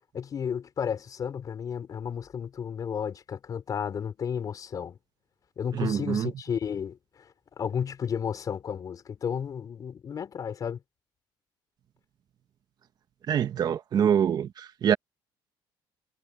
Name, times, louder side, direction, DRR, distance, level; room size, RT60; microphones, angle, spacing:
voice 1, 0.1-5.0 5.6-7.3 7.6-10.8, left 7 dB, 40° left, 4.8 m, -33 dB
voice 2, 5.8-6.3 13.3-15.0, right 8 dB, 45° right, 1.2 m, -25 dB
cardioid pair, 135°, 9 cm